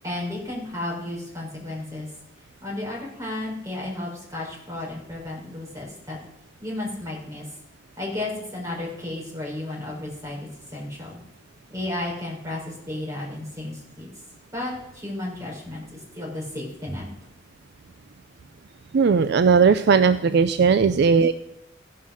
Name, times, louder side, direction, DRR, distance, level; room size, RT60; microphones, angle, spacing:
voice 1, 0.0-2.1 2.6-6.2 6.6-7.5 8.0-11.2 11.7-14.1 14.5-17.1, left 1 dB, 15° right, -3 dB, 4.2 m, -33 dB
voice 2, 18.9-21.3, right 5 dB, 55° right, 11 dB, 0.4 m, -17 dB
16.0 x 5.7 x 6.3 m, 0.84 s
head